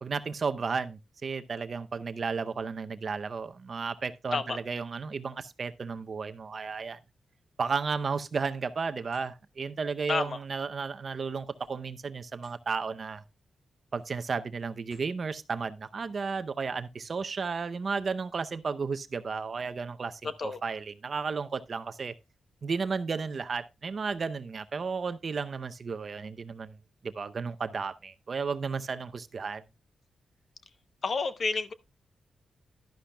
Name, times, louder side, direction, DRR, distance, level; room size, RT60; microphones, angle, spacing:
voice 1, 0.0-7.0 7.6-13.2 13.9-22.1 22.6-26.8 27.0-29.6, right 5 dB, 45° right, 0.6 m, -33 dB
sound 1, 9.1-9.3 11.4-12.6 13.1-13.3 13.8-14.3 14.8-15.2, left 2 dB, 70° left, 7.7 m, -65 dB
voice 2, 10.1-10.4 20.4-20.6 31.0-31.7, left 4 dB, 45° left, 0.8 m, -30 dB
11.5 x 11.5 x 2.2 m
wide cardioid pair, 145°, 0 cm